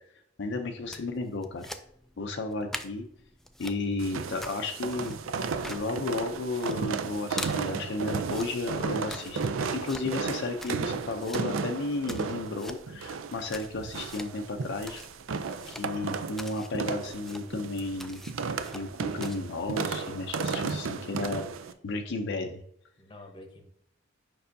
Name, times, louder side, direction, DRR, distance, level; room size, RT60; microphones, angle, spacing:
voice 1, 0.4-1.7 2.2-3.1 3.6-5.2 5.7-9.4 9.7-15.0 15.7-18.2 18.7-21.5 21.8-22.6, left 2 dB, 60° left, 4 dB, 0.5 m, -33 dB
sound 1, 0.8-19.8, left 1 dB, ahead, 0.3 m, -46 dB
sound 2, 4.0-21.7, right 5 dB, 80° right, 0.4 m, -34 dB
voice 2, 20.6-21.1 23.0-23.7, left 1 dB, 25° left, 4 dB, 0.9 m, -49 dB
6.7 x 5.4 x 2.6 m, 0.73 s
head